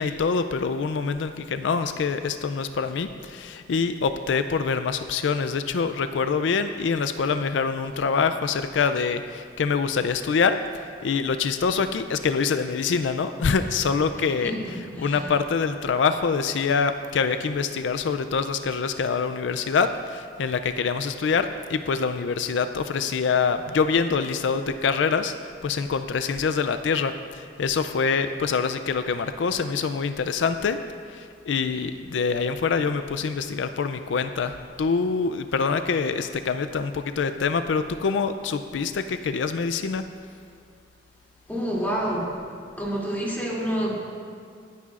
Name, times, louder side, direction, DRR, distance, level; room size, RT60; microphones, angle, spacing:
voice 1, 0.0-10.6 11.0-25.3 25.6-30.8 31.1-40.0, left 5 dB, 80° left, 10 dB, 0.4 m, -25 dB
voice 2, 14.1-15.4 41.5-42.3 42.8-43.9, equal, 10° left, -6 dB, 2.6 m, -29 dB
20.0 x 9.7 x 2.5 m, 2.3 s
head